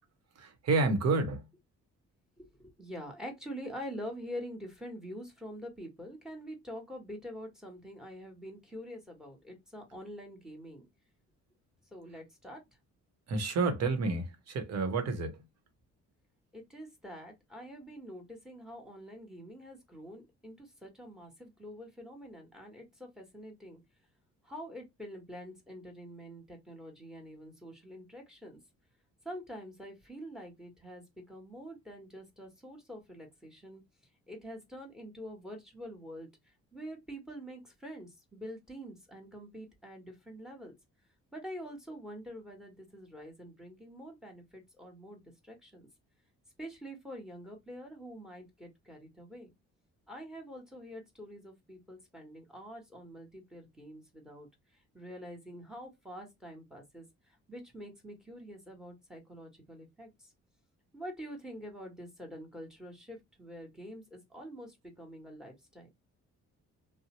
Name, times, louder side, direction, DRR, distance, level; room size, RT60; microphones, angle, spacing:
voice 1, 0.4-1.4 13.3-15.3, right 3 dB, 60° right, 0.9 m, -29 dB
voice 2, 2.4-10.8 11.9-12.6 16.5-23.8 24.4-28.6 29.2-33.8 34.3-36.3 36.7-40.7 41.3-45.9 46.6-49.5 50.1-54.5 54.9-60.3 60.9-65.9, equal, ahead, 1.2 m, -46 dB
2.7 x 2.0 x 2.9 m
cardioid pair, 90°, 30 cm